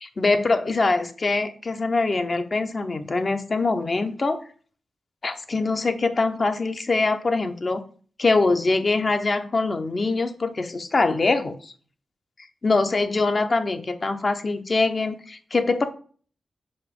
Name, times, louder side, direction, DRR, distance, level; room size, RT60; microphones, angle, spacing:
voice 1, 0.0-4.4 5.2-7.8 8.2-11.7 12.6-15.8, left 3 dB, 45° left, 8 dB, 0.9 m, -23 dB
5.6 x 4.6 x 5.3 m, 0.43 s
cardioid pair, 60°, 0 cm